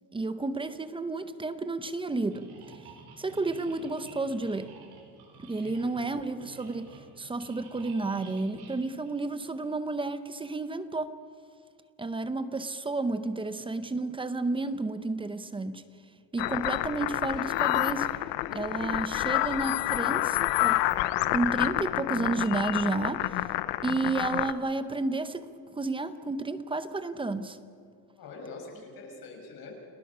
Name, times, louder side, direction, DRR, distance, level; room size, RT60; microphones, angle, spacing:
voice 1, 0.1-2.5 3.2-4.7 5.4-11.2 12.0-15.8 16.3-18.1 18.5-20.8 21.3-23.4 23.8-25.5 25.7-27.6, right 3 dB, 10° right, 11 dB, 0.7 m, -31 dB
sound 1, 2.3-9.7, right 4 dB, 55° right, 4.4 m, -51 dB
voice 2, 5.6-6.0 28.2-29.7, left 3 dB, 50° left, 1 dB, 6.1 m, -44 dB
sound 2, 16.4-24.5, left 16 dB, 70° left, 0.9 m, -28 dB
29.5 x 19.5 x 5.5 m, 2.4 s
cardioid pair, 160°, 45 cm